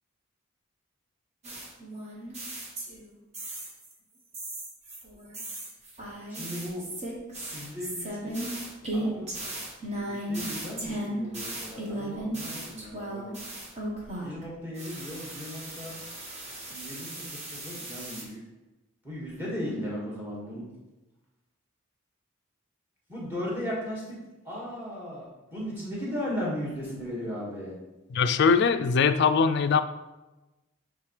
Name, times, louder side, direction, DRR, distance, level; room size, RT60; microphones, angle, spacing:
sound 1, 1.4-3.1 3.3-3.9 4.3-14.4 14.8-18.2, right 1 dB, 30° right, 1.2 m, -36 dB
voice 1, 6.3-6.8 7.5-8.5 8.9-9.3 10.0-13.2 14.2-16.0 16.7-18.4 19.0-20.7 23.1-24.2 24.4-27.7, equal, 10° right, -5 dB, 1.8 m, -36 dB
voice 2, 28.1-29.8, left 5 dB, 55° left, 10 dB, 0.3 m, -22 dB
9.2 x 3.6 x 3.3 m, 1.1 s
head